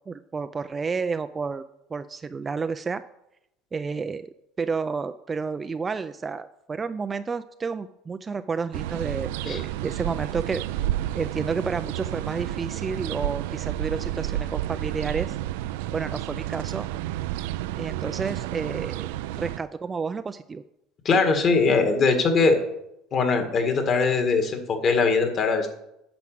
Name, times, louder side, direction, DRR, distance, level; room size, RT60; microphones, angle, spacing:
voice 1, 0.1-1.6 1.9-3.0 3.7-4.3 4.6-10.6 11.2-15.4 15.9-16.9 17.8-19.1 19.4-20.6, right 5 dB, 20° right, 10 dB, 0.4 m, -30 dB
sound 1, 8.7-19.6, right 14 dB, 85° right, 0.4 m, -31 dB
voice 2, 21.1-22.6 23.1-25.7, left 4 dB, 35° left, 6 dB, 1.8 m, -21 dB
9.1 x 6.1 x 7.7 m, 0.83 s
cardioid pair, 145°, 0 cm